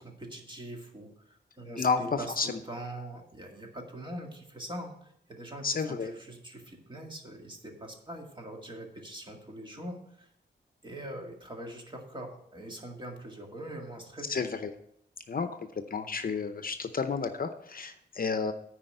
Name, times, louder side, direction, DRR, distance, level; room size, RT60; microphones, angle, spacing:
voice 1, 0.0-10.3 10.8-14.3, right 1 dB, 25° right, 1 dB, 2.0 m, -43 dB
voice 2, 1.8-2.6 5.6-6.1 14.3-14.7 15.3-18.5, left 5 dB, 50° left, 9 dB, 0.7 m, -31 dB
9.7 x 5.0 x 7.7 m, 0.73 s
wide cardioid pair, 110°, 19 cm